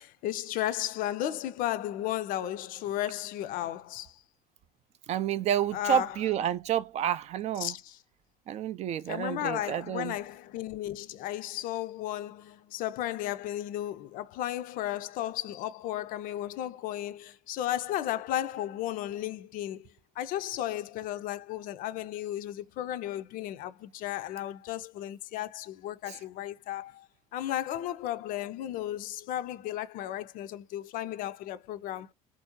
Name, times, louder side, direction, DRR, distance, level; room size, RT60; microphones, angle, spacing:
voice 1, 0.0-4.2 5.7-6.2 7.6-8.0 9.1-27.1 27.3-32.1, left 13 dB, 45° left, 0.5 m, -34 dB
voice 2, 5.1-7.7 8.5-10.1 26.1-26.2, right 10 dB, 35° right, 0.4 m, -29 dB
3.4 x 2.6 x 2.9 m
figure-of-eight pair, 60°, 19 cm